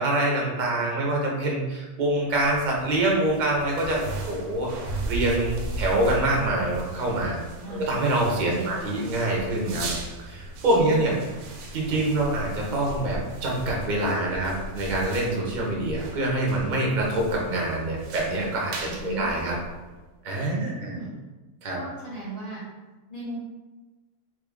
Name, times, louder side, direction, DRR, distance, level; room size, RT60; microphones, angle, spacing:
voice 1, 0.0-7.4 7.8-9.9 10.3-11.1 11.7-19.5 20.2-20.9 21.6-21.8, right 1 dB, 45° right, -2 dB, 0.7 m, -25 dB
sound 1, 2.2-20.1, right 2 dB, 85° right, 1.1 m, -37 dB
voice 2, 8.5-9.0 10.7-11.4 18.9-19.3 20.5-21.2 21.7-22.6 23.1-23.4, right 2 dB, 15° left, -9 dB, 0.8 m, -36 dB
3.1 x 2.4 x 3.5 m, 1.2 s
omnidirectional pair, 1.5 m